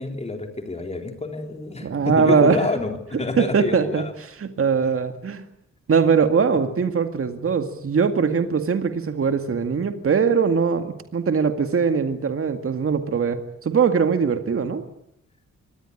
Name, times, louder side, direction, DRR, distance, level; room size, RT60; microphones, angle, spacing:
voice 1, 0.0-4.1 6.5-6.6, left 3 dB, 20° left, 4 dB, 3.6 m, -28 dB
voice 2, 1.8-2.6 3.4-4.0 4.4-5.4 5.9-14.8, right 6 dB, 45° right, 7 dB, 2.1 m, -21 dB
25.0 x 19.0 x 9.9 m, 0.79 s
wide cardioid pair, 145°, 30 cm